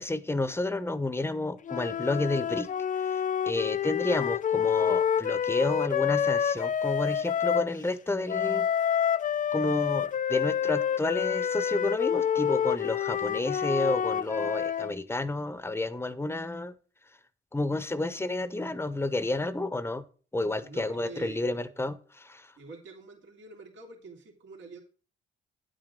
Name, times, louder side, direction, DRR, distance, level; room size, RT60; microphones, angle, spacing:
voice 1, 0.0-2.7 3.1-3.2 3.5-8.7 9.5-16.7 17.5-20.0 20.3-22.5, left 2 dB, 10° left, 15 dB, 0.9 m, -30 dB
sound 1, 1.6-7.7 8.3-14.9, left 8 dB, 40° left, 0.5 m, -28 dB
voice 2, 20.6-21.8 22.6-24.8, right 3 dB, 70° right, 0 dB, 3.2 m, -46 dB
9.9 x 8.8 x 3.8 m, 0.38 s
cardioid pair, 90°, 20 cm